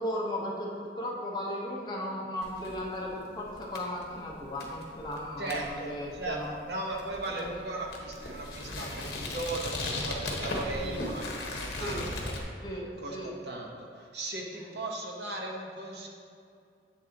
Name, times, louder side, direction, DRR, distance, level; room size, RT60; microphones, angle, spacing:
voice 1, 0.0-6.5 7.3-7.5 10.8-11.1 11.8-12.1 12.6-13.3 14.5-14.7, left 1 dB, 25° left, -4 dB, 1.1 m, -36 dB
sound 1, 2.4-12.4, left 2 dB, 65° left, 1.2 m, -38 dB
voice 2, 5.4-6.4 6.7-12.4 13.0-16.1, right 2 dB, 70° right, 0 dB, 1.0 m, -37 dB
8.2 x 7.1 x 2.9 m, 2.4 s
head